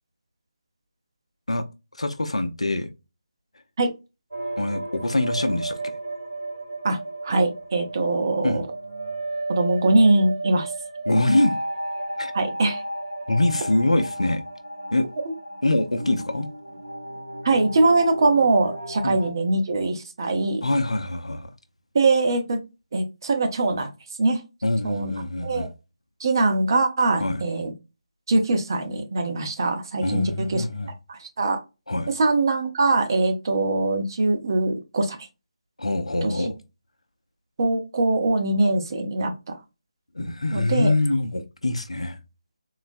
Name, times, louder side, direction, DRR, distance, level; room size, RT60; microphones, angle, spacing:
voice 1, 1.9-2.9 4.6-6.0 8.4-8.6 11.1-11.6 12.2-12.3 13.3-14.4 14.9-15.1 15.6-16.5 19.0-19.2 20.6-21.5 24.6-25.7 27.2-27.4 30.0-30.9 31.9-32.1 35.8-36.6 40.1-42.2, left 2 dB, 75° left, 0.6 m, -24 dB
sound 1, 4.3-19.3, right 2 dB, 85° right, 1.6 m, -33 dB
voice 2, 7.2-8.7 9.5-10.7 12.3-12.8 17.4-20.7 21.9-22.6 22.9-23.9 24.2-24.4 24.8-25.1 25.4-25.7 26.2-27.7 28.3-30.6 31.1-31.6 32.2-35.2 36.2-36.3 37.6-39.6 40.5-40.9, right 2 dB, 40° right, 0.6 m, -22 dB
3.9 x 2.1 x 2.5 m
figure-of-eight pair, 155°, 3 cm